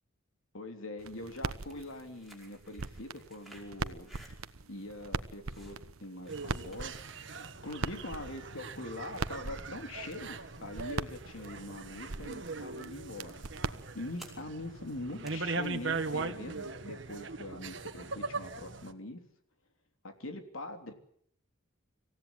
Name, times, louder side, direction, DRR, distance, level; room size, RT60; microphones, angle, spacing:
voice 1, 0.5-4.1 4.7-6.9 7.6-13.4 13.9-19.2 20.0-20.9, left 1 dB, 75° left, 5 dB, 3.3 m, -43 dB
sound 1, 1.0-14.4, right 3 dB, 85° right, 1.1 m, -42 dB
sound 2, 1.5-17.0, right 1 dB, ahead, 5.2 m, -61 dB
sound 3, 6.3-18.9, right 3 dB, 60° right, 1.6 m, -40 dB
26.5 x 16.5 x 9.2 m, 0.66 s
head